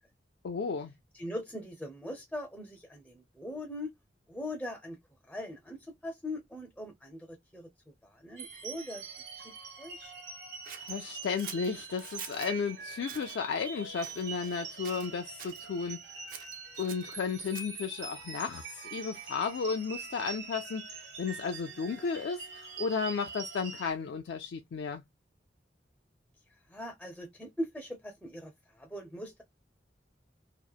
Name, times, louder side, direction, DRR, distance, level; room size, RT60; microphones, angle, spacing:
voice 1, 0.4-0.9 10.8-16.0 16.8-25.0, left 5 dB, 75° left, 0.3 m, -34 dB
voice 2, 1.1-3.9 4.3-5.0 5.3-7.7 8.0-9.1 9.4-10.1 26.7-29.4, left 1 dB, 5° left, 0.4 m, -41 dB
sound 1, 8.4-23.9, right 5 dB, 80° right, 1.1 m, -44 dB
Scissors, 10.7-12.5 13.0-13.4 14.0-14.6 14.8-15.6 16.3-17.9, right 7 dB, 50° right, 0.5 m, -46 dB
2.8 x 2.1 x 2.2 m
head